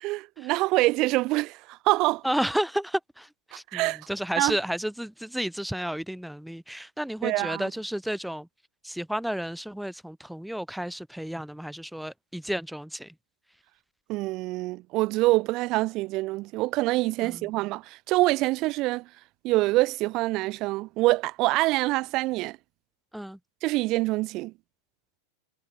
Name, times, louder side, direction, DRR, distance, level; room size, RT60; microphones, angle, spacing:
voice 1, 0.0-2.2 3.7-4.0 4.4-4.6 7.2-7.7 14.1-19.1 19.4-22.6 23.6-24.5, right 20 dB, 40° right, 0.5 m, -25 dB
voice 2, 2.2-8.5 8.8-13.1 17.2-17.5 23.1-23.4, equal, ahead, 1.0 m, -32 dB
figure-of-eight pair, 90°, 0 cm